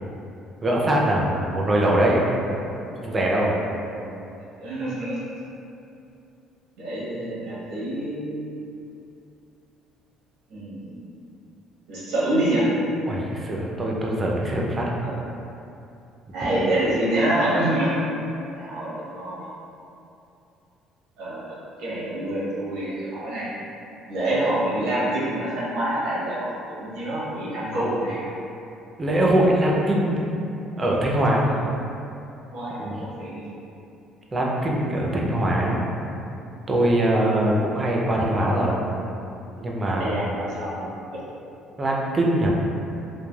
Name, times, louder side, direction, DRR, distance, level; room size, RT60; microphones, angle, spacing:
voice 1, 0.6-2.2 3.0-3.5 13.0-14.9 29.0-30.3 30.8-31.4 32.8-33.0 34.3-35.8 36.7-38.8 39.6-40.2 41.8-42.5, right 1 dB, 20° right, -3 dB, 0.4 m, -22 dB
voice 2, 3.9-5.2 6.8-8.4 10.5-11.1 11.9-12.7 15.0-15.1 16.3-18.0 18.5-19.5 21.2-23.5 24.1-28.3 32.5-33.5 40.0-41.2, right 1 dB, 85° right, -8 dB, 0.9 m, -27 dB
3.1 x 2.1 x 2.2 m, 2.7 s
cardioid pair, 135°, 0 cm